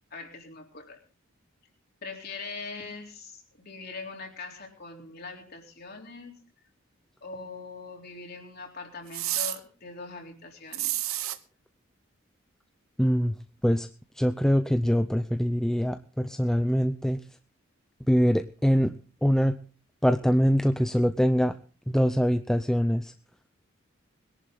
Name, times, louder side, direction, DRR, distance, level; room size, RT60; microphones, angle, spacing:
voice 1, 0.1-1.0 2.0-6.4 7.2-11.1, left 4 dB, 50° left, 1 dB, 3.8 m, -42 dB
sound 1, 9.1-9.6 10.7-11.4, right 15 dB, 90° right, 1.0 m, -29 dB
voice 2, 13.0-13.3 13.6-13.9 14.2-17.2 18.1-18.9 19.2-19.5 20.0-21.5 21.9-23.1, equal, ahead, 8 dB, 0.6 m, -23 dB
21.5 x 11.0 x 3.9 m, 0.37 s
head